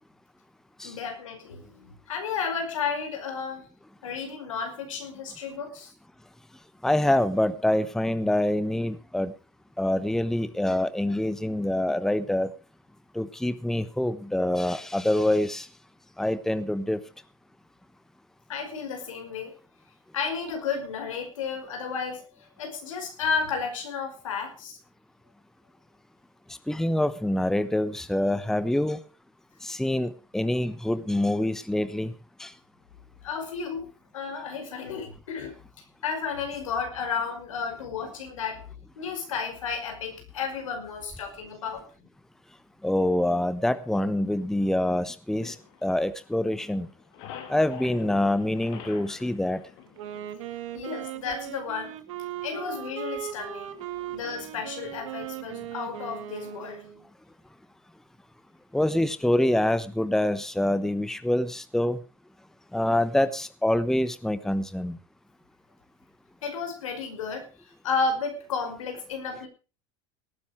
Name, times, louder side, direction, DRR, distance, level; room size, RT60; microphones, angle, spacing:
voice 1, 0.8-3.7 4.0-5.9 18.5-19.5 20.1-24.8 33.2-33.9 34.1-35.5 36.0-38.6 39.0-41.8 50.7-51.9 52.4-53.7 54.1-56.8 66.4-67.5 67.8-69.5, left 5 dB, 85° left, 5 dB, 5.3 m, -32 dB
voice 2, 6.8-9.3 9.8-12.5 13.1-15.7 16.2-17.0 26.7-29.0 29.6-32.1 32.4-32.5 42.8-45.5 45.8-46.9 47.5-49.6 58.7-62.0 62.7-65.0, left 1 dB, 5° left, 13 dB, 1.1 m, -25 dB
sound 1, 45.4-46.5 46.8-50.5, left 9 dB, 70° left, 3.5 m, -45 dB
Wind instrument woodwind instrument, 49.9-57.0, right 12 dB, 75° right, 2.0 m, -38 dB
18.5 x 9.9 x 5.0 m, 0.35 s
hypercardioid pair, 95°, 16 cm